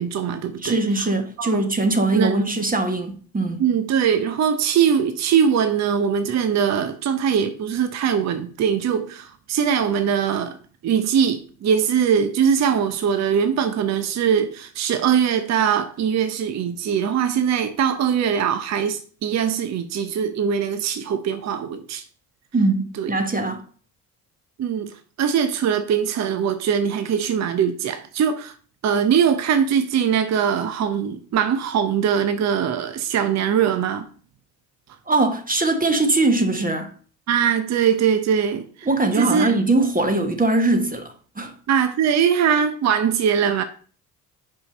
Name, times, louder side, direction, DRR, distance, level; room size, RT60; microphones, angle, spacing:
voice 1, 0.0-1.1 1.4-1.6 2.1-2.4 3.6-10.6 10.8-22.0 23.0-23.1 24.6-28.5 28.8-34.1 37.3-38.9 39.2-39.5 41.7-43.6, right 8 dB, 35° right, 0.7 m, -21 dB
voice 2, 0.6-3.6 22.5-23.6 35.1-36.9 38.8-41.5, right 2 dB, 15° right, 1.2 m, -21 dB
5.6 x 5.4 x 5.2 m
figure-of-eight pair, 45°, 48 cm